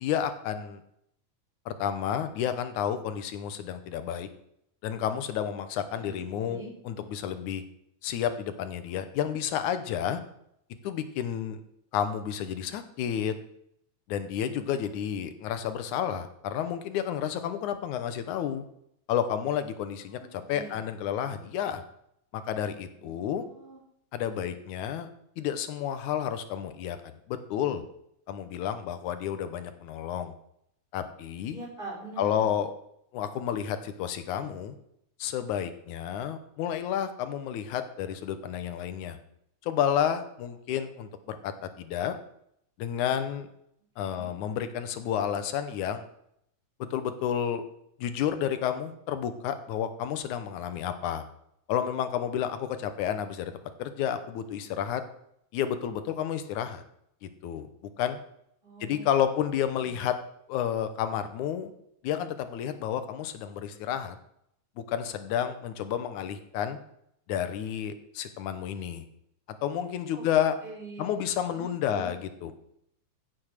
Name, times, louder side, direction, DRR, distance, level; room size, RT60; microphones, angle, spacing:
voice 1, 0.0-0.8 1.7-4.3 4.8-7.6 8.0-10.2 10.8-11.6 11.9-13.3 14.1-18.6 19.1-21.8 22.3-23.4 24.1-25.1 25.4-27.0 27.3-27.8 28.3-30.3 30.9-31.6 32.2-32.7 33.1-34.8 35.2-39.2 39.6-42.2 42.8-43.5 44.0-46.0 46.9-47.6 48.0-51.3 51.7-53.5 53.8-55.0 55.5-56.8 57.2-57.7 58.0-58.2 58.8-60.2 60.5-61.7 62.0-64.2 64.8-66.8 67.3-69.0 69.6-70.5 71.0-72.5, left 9 dB, 85° left, 10 dB, 2.3 m, -31 dB
voice 2, 5.9-6.7 20.2-20.7 23.0-23.8 31.5-32.5 44.0-44.3 58.6-59.1 59.7-60.0 70.1-70.3 70.6-72.1, right 2 dB, 15° right, -3 dB, 4.2 m, -44 dB
16.0 x 6.9 x 6.5 m, 0.74 s
omnidirectional pair, 3.4 m